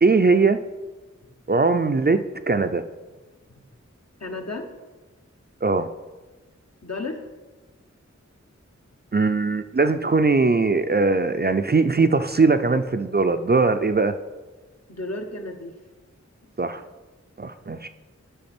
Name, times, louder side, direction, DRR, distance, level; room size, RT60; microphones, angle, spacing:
voice 1, 0.0-0.6 1.5-2.8 5.6-5.9 9.1-14.1 16.6-16.8 17.4-17.9, right 3 dB, 35° right, 9 dB, 0.4 m, -20 dB
voice 2, 4.2-4.7 6.8-7.2 14.9-15.7, left 2 dB, 60° left, 3 dB, 1.1 m, -32 dB
10.5 x 5.7 x 4.4 m, 1.2 s
wide cardioid pair, 50°, 30 cm